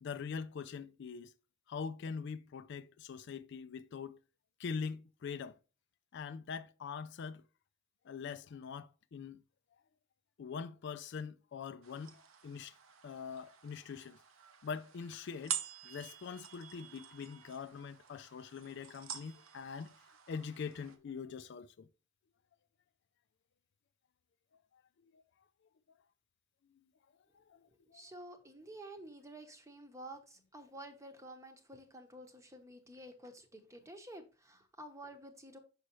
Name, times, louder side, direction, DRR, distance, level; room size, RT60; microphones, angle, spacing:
voice 1, 0.0-1.3 1.7-4.2 4.6-5.6 6.1-7.4 8.1-9.4 10.4-12.7 13.0-14.2 14.6-15.6 15.8-19.9 20.3-21.9 25.1-25.2 27.3-28.0, left 5 dB, 60° left, 0.4 m, -43 dB
sound 1, 11.8-21.0, right 8 dB, 80° right, 0.9 m, -47 dB
voice 2, 27.9-35.6, right 1 dB, 15° right, 0.9 m, -51 dB
6.2 x 5.6 x 3.0 m
head